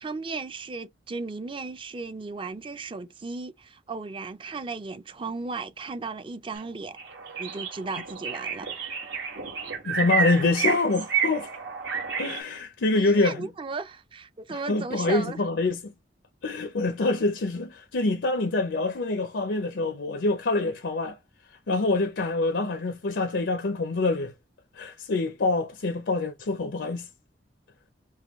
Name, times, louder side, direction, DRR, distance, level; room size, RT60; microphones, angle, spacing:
voice 1, 0.0-7.0 7.4-8.7 12.9-15.4, right 4 dB, 30° right, 0.4 m, -35 dB
sound 1, 6.5-6.6 7.0-12.4, right 6 dB, 80° right, 1.7 m, -30 dB
voice 2, 9.8-11.5 12.2-13.5 14.5-15.9 16.4-21.2 21.7-24.3 24.7-27.1, left 3 dB, 80° left, 0.6 m, -26 dB
5.4 x 2.3 x 3.0 m
head